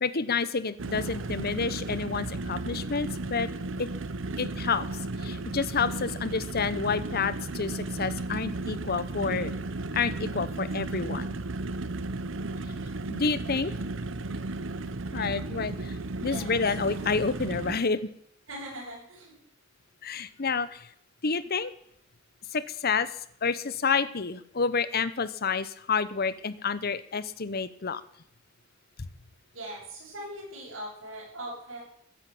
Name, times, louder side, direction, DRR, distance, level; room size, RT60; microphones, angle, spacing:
voice 1, 0.0-3.5 3.8-3.9 4.4-4.9 5.2-9.5 9.9-11.4 13.1-13.7 15.1-16.0 16.2-18.1 20.0-20.9 21.2-21.7 22.5-23.1 23.4-28.0, left 5 dB, 50° left, 15 dB, 0.9 m, -29 dB
sound 1, 0.8-17.8, right 2 dB, 70° right, 0.8 m, -34 dB
voice 2, 13.4-13.7 16.3-16.6 18.5-19.3 29.5-31.8, right 1 dB, 85° right, -8 dB, 7.9 m, -41 dB
14.5 x 10.5 x 7.8 m, 0.69 s
head